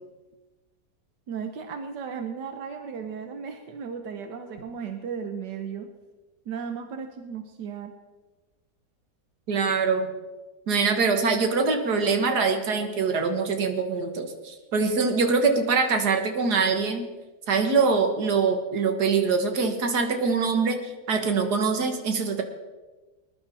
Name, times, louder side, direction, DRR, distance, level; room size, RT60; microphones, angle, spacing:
voice 1, 1.3-5.9 6.5-7.9, right 6 dB, 90° right, 6 dB, 1.6 m, -35 dB
voice 2, 9.5-10.1 10.7-17.1 17.5-22.4, right 4 dB, 70° right, 5 dB, 2.0 m, -24 dB
20.0 x 11.5 x 4.1 m, 1.2 s
omnidirectional pair, 1.8 m